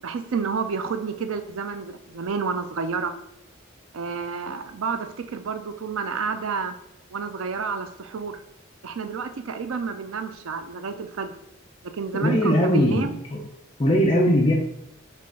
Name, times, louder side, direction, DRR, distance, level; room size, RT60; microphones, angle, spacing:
voice 1, 0.0-3.1 3.9-6.7 7.1-8.4 8.8-11.4 11.8-13.2, right 5 dB, 75° right, 8 dB, 0.5 m, -30 dB
voice 2, 12.2-13.0 13.3-13.4 13.8-14.5, equal, 25° left, -2 dB, 0.4 m, -19 dB
5.7 x 2.5 x 3.6 m, 0.79 s
head